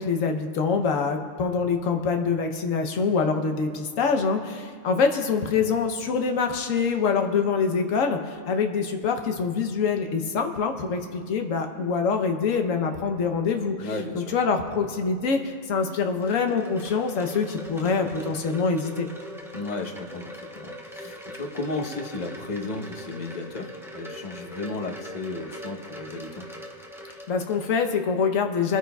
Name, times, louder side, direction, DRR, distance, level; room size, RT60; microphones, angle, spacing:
voice 1, 0.0-13.9 14.1-19.1 27.3-28.8, left 5 dB, 90° left, 5 dB, 1.2 m, -25 dB
voice 2, 13.8-14.3 17.8-18.0 19.5-26.4, left 2 dB, 35° left, 4 dB, 1.0 m, -34 dB
Wind chime, 15.8-28.0, equal, ahead, 0.7 m, -41 dB
27.5 x 9.4 x 2.3 m, 2.2 s
omnidirectional pair, 1.3 m